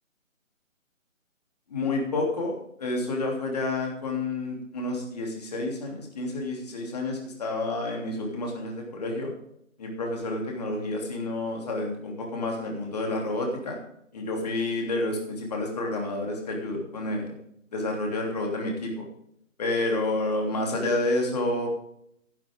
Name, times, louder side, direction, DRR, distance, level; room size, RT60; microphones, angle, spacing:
voice 1, 1.7-9.3 9.8-13.8 14.1-17.3 17.7-19.0 19.6-21.7, left 2 dB, 30° left, 1 dB, 3.0 m, -29 dB
14.0 x 11.5 x 3.6 m, 0.73 s
figure-of-eight pair, 155°, 41 cm